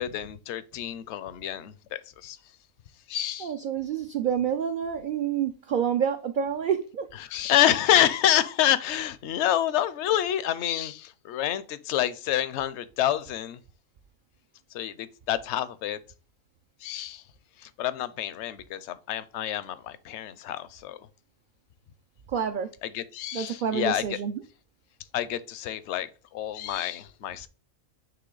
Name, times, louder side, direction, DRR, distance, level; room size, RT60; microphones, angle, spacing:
voice 1, 0.0-2.4 3.1-3.5 7.2-13.6 14.7-16.0 16.8-17.2 17.6-21.1 22.8-24.2 25.1-27.5, left 11 dB, 65° left, 0.8 m, -28 dB
voice 2, 3.4-7.1 22.3-22.7 23.3-24.3, right 8 dB, 60° right, 0.5 m, -28 dB
8.9 x 3.3 x 3.9 m
omnidirectional pair, 1.4 m